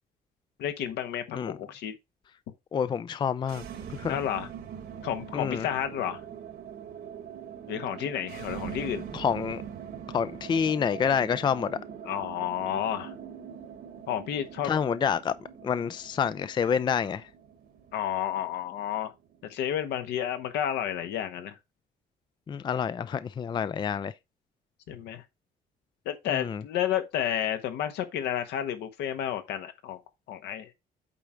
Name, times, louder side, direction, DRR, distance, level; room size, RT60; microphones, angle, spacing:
voice 1, 0.6-1.9 4.1-4.5 5.0-6.2 7.7-9.0 12.0-13.1 14.1-14.7 17.9-19.1 19.5-21.6 24.9-25.2 26.0-30.0 30.3-30.7, left 10 dB, 80° left, 1.4 m, -31 dB
voice 2, 2.7-3.6 4.0-4.2 5.3-5.7 9.1-9.6 10.1-11.8 14.6-15.3 15.6-17.3 22.5-24.1 26.3-26.6, left 7 dB, 25° left, 0.4 m, -28 dB
sound 1, 3.4-19.5, right 8 dB, 65° right, 1.5 m, -43 dB
8.4 x 3.8 x 4.4 m
cardioid pair, 110°, 17 cm